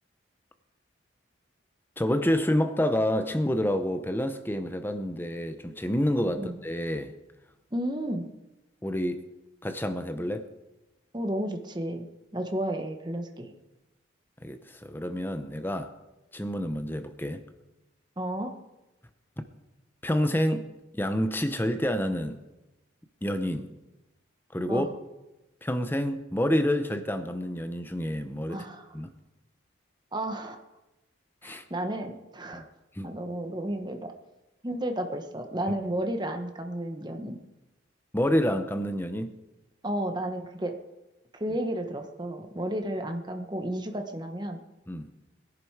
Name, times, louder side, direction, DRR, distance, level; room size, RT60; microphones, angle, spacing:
voice 1, 2.0-7.1 8.8-9.2 9.6-10.5 14.4-15.9 16.3-17.4 20.0-20.7 20.9-22.4 23.2-23.7 24.5-24.9 25.6-28.6 28.9-29.1 31.4-31.6 32.5-32.6 32.9-33.1 38.1-39.4 44.9-45.1, equal, 10° left, 0.8 m, -28 dB
voice 2, 7.7-8.3 11.1-12.1 12.3-13.5 18.2-18.5 24.7-24.9 28.5-28.9 30.1-30.6 31.4-32.6 33.0-34.1 34.6-37.4 39.8-40.8 41.3-44.6, right 1 dB, 20° right, 1.2 m, -32 dB
20.5 x 11.0 x 4.7 m
head